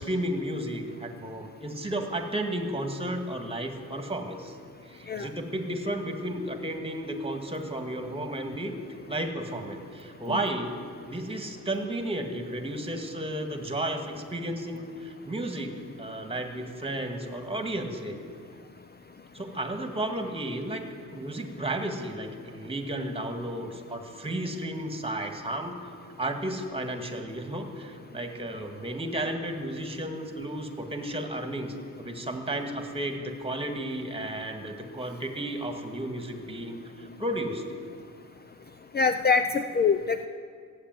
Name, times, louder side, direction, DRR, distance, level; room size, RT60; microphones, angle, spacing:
voice 1, 0.0-4.5 4.9-8.8 9.1-10.8 11.1-18.2 19.3-20.9 21.1-25.9 26.2-37.6, right 1 dB, 15° right, 5 dB, 1.9 m, -33 dB
voice 2, 38.9-40.3, left 5 dB, 30° left, 9 dB, 0.6 m, -24 dB
15.0 x 8.6 x 9.2 m, 2.1 s
cardioid pair, 85°, 33 cm